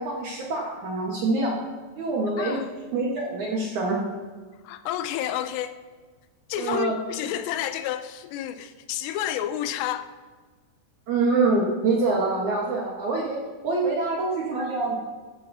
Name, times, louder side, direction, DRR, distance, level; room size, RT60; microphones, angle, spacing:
voice 1, 0.0-1.6 2.0-2.6 2.9-4.0 6.6-7.0 11.1-13.4 13.6-15.0, right 3 dB, 65° right, -2 dB, 2.0 m, -25 dB
voice 2, 2.4-2.7 4.6-5.8 6.5-10.1, left 11 dB, 85° left, 11 dB, 2.7 m, -30 dB
15.0 x 13.5 x 2.7 m, 1.4 s
omnidirectional pair, 5.0 m